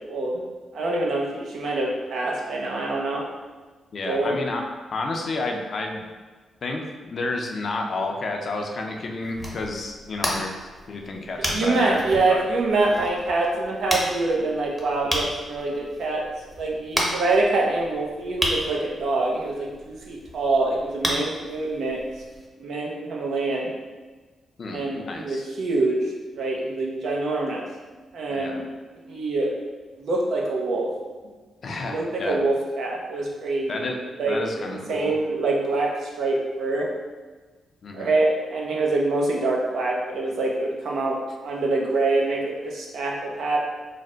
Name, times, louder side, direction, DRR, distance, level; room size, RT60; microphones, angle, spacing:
voice 1, 0.1-0.4 0.7-3.2 4.0-4.4 11.5-16.2 16.6-22.0 22.6-23.7 24.7-26.0 26.4-27.6 28.1-28.6 29.1-29.5 30.0-30.9 31.8-33.8 34.2-36.9 37.9-41.2 41.4-43.6, right 2 dB, 75° right, -2 dB, 0.6 m, -25 dB
voice 2, 3.9-4.6 4.9-6.0 6.6-10.5 10.9-12.4 24.6-25.4 28.3-28.6 31.6-32.5 33.7-34.0 34.3-35.2 37.8-38.1, left 2 dB, 55° left, 2 dB, 0.5 m, -31 dB
sound 1, 9.2-22.5, equal, 5° right, 0.8 m, -32 dB
3.2 x 2.1 x 3.8 m, 1.4 s
cardioid pair, 70°, 0 cm